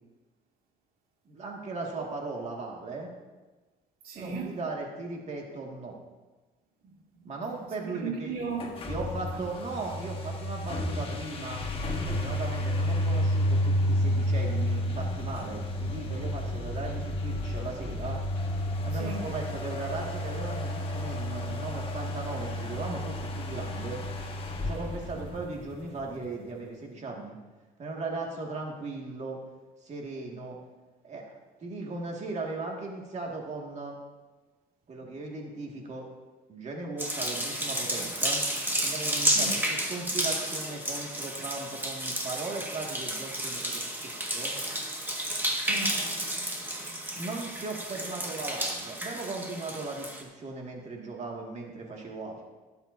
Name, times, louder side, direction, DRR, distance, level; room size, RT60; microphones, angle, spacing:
voice 1, 1.3-3.1 4.1-6.0 7.2-8.3 8.9-11.6 12.0-18.2 18.8-24.0 24.6-27.4 27.8-29.4 29.8-30.6 31.0-31.2 31.6-34.0 34.9-36.1 36.5-38.4 38.8-44.5 47.1-52.5, right 3 dB, 45° right, 2.2 m, -37 dB
voice 2, 4.0-4.6 7.2-7.3 7.8-8.7 19.0-19.3 39.3-39.5 45.6-46.5 46.8-47.0, right 4 dB, 60° right, 2.5 m, -36 dB
sound 1, 8.5-26.0, left 1 dB, 35° left, 1.5 m, -31 dB
sound 2, 37.0-50.2, right 1 dB, 10° right, 1.8 m, -31 dB
17.5 x 8.1 x 2.8 m
cardioid pair, 110°, 17 cm